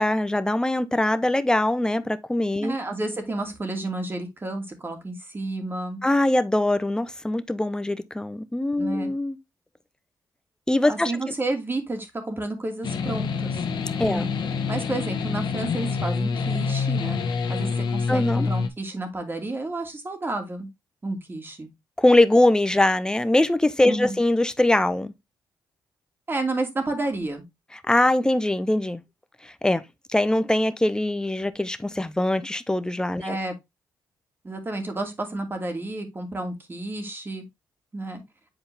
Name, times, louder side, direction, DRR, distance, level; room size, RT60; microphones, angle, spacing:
voice 1, 0.0-2.8 6.0-9.4 10.7-11.3 14.0-14.3 18.1-18.5 22.0-25.1 27.9-29.0 29.4-29.8 30.1-33.4, left 1 dB, 10° left, 0.9 m, -22 dB
voice 2, 2.6-6.0 8.8-9.1 10.9-13.6 14.1-14.3 14.7-17.2 17.5-20.7 21.0-21.7 23.9-24.2 26.3-27.5 33.2-33.5 34.4-37.4 37.9-38.2, right 2 dB, 30° right, 2.6 m, -31 dB
sound 1, 12.8-18.7, left 5 dB, 70° left, 1.3 m, -27 dB
8.0 x 4.3 x 3.4 m
cardioid pair, 70°, 8 cm